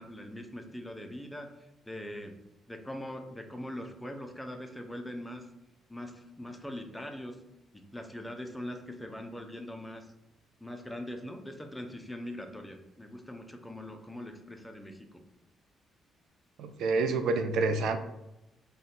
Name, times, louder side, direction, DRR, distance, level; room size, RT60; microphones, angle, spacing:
voice 1, 0.0-1.5 1.8-2.4 2.7-5.5 5.9-7.4 7.7-10.1 10.6-15.2, left 1 dB, 10° left, 5 dB, 0.4 m, -42 dB
voice 2, 16.6-18.0, right 3 dB, 80° right, 8 dB, 0.3 m, -28 dB
2.6 x 2.2 x 3.8 m, 0.92 s
cardioid pair, 90°, 0 cm